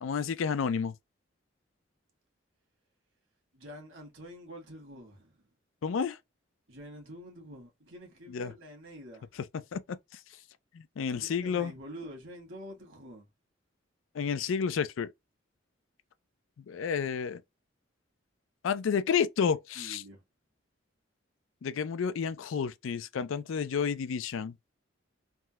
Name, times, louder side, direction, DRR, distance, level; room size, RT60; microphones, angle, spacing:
voice 1, 0.0-0.9 5.8-6.2 8.3-8.5 9.4-10.2 10.7-11.7 14.1-15.1 16.6-17.4 18.6-20.0 21.6-24.6, left 6 dB, 90° left, 0.4 m, -31 dB
voice 2, 3.5-5.4 6.7-9.3 11.2-13.3 19.7-20.2, equal, 75° right, 1.5 m, -47 dB
3.5 x 2.1 x 2.8 m
head